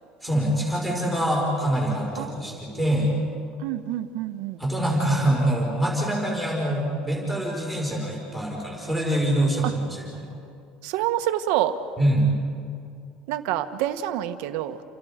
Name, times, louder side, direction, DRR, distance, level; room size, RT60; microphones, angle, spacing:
voice 1, 0.2-3.1 4.6-10.3 12.0-12.3, right 1 dB, ahead, -2 dB, 5.0 m, -24 dB
voice 2, 2.1-3.3 3.6-4.6 6.3-6.4 9.6-9.8 10.8-11.8 13.3-14.8, right 13 dB, 70° right, 8 dB, 1.4 m, -28 dB
29.0 x 28.0 x 5.2 m, 2.4 s
cardioid pair, 180°, 2 cm